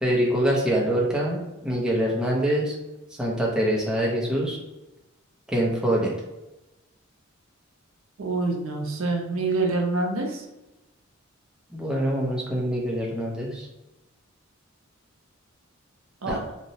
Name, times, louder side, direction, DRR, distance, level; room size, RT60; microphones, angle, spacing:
voice 1, 0.0-2.8 3.2-4.6 5.5-6.1 11.7-13.7 16.3-16.4, right 1 dB, 5° right, -4 dB, 0.5 m, -24 dB
voice 2, 8.2-10.4 16.2-16.4, right 3 dB, 75° right, 2 dB, 0.5 m, -26 dB
2.8 x 2.0 x 2.7 m, 0.99 s
head